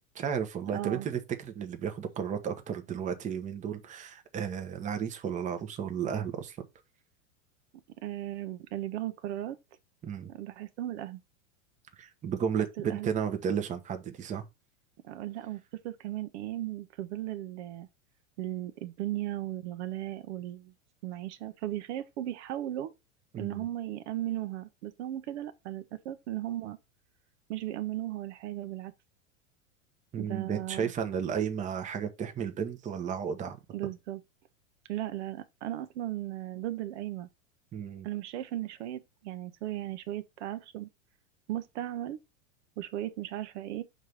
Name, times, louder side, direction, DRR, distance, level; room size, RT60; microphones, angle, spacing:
voice 1, 0.1-6.6 10.0-10.3 12.0-14.4 23.3-23.6 30.1-33.6 37.7-38.1, right 7 dB, 20° right, 0.9 m, -33 dB
voice 2, 0.7-1.1 8.0-9.6 10.3-11.2 12.8-13.1 15.0-17.9 18.4-20.7 21.0-22.9 23.4-26.8 27.5-28.9 30.2-30.9 33.7-34.2 34.9-37.3 38.0-40.9 41.5-42.2 42.8-43.8, right 13 dB, 60° right, 0.9 m, -36 dB
6.4 x 3.3 x 5.3 m
supercardioid pair, 130°, 39 cm